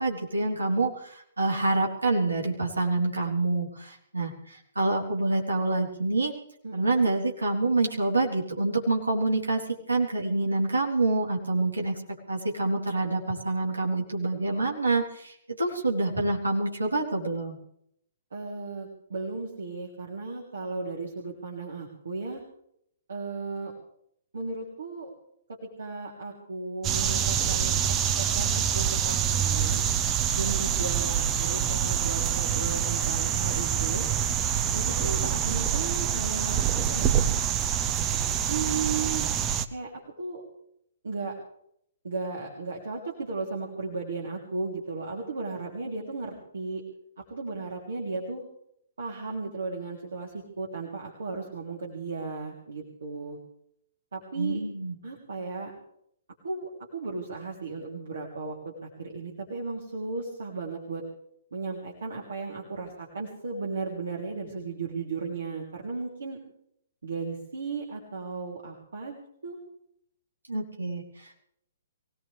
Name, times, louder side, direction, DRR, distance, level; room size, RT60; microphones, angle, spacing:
voice 1, 0.0-6.3 6.7-17.6 54.4-55.0 70.5-71.4, right 2 dB, 80° right, -1 dB, 3.7 m, -27 dB
voice 2, 6.6-7.1 18.3-22.4 23.1-23.7 24.3-25.1 25.5-27.7 28.2-28.5 28.7-29.8 30.3-34.0 34.7-37.4 38.5-39.3 39.7-39.9 40.2-40.4 41.0-41.3 42.0-46.8 47.2-48.4 49.0-53.4 54.1-54.6 55.0-55.7 56.4-61.0 61.5-66.4 67.0-69.6, right 4 dB, 65° right, -2 dB, 3.4 m, -35 dB
sound 1, 26.8-39.6, right 9 dB, 20° right, 0.8 m, -26 dB
23.5 x 18.0 x 3.5 m, 0.71 s
figure-of-eight pair, 120°, 0 cm